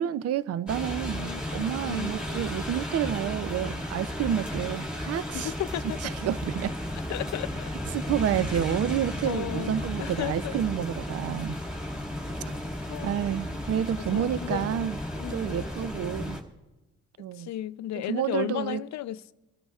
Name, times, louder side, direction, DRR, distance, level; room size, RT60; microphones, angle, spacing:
voice 1, 0.0-5.5 5.8-6.7 7.9-11.6 13.0-15.0 15.3-16.4 17.2-17.5 18.1-18.8, right 10 dB, 55° right, 0.5 m, -29 dB
sound 1, 0.7-16.4, left 1 dB, 5° right, 2.1 m, -34 dB
voice 2, 1.2-2.1 5.3-6.0 7.1-7.7 9.3-9.7 10.0-10.5 12.4-12.5 12.9-13.2 14.1-14.7 15.2-15.6 17.4-19.3, left 13 dB, 65° left, 0.5 m, -34 dB
22.5 x 13.0 x 2.4 m
cardioid pair, 90°, 30 cm